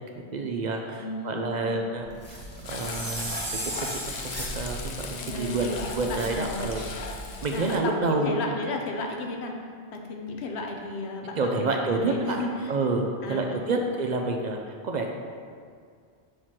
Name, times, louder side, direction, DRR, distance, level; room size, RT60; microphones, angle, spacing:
voice 1, 0.3-2.4 2.7-3.4 3.6-6.8 7.4-8.4 11.4-12.4 12.7-15.1, right 3 dB, 55° right, 2 dB, 0.5 m, -28 dB
voice 2, 1.0-1.9 5.2-5.8 6.1-6.7 7.5-9.6 9.9-12.7 13.2-13.8, left 2 dB, 70° left, 2 dB, 1.0 m, -34 dB
sound 1, 2.0-7.4, equal, 15° left, 1.3 m, -40 dB
Frying (food), 2.6-7.8, left 4 dB, 50° left, 0.5 m, -38 dB
Chime, 2.7-4.7, right 2 dB, 80° right, 1.5 m, -36 dB
6.5 x 3.1 x 5.7 m, 2.1 s
omnidirectional pair, 1.1 m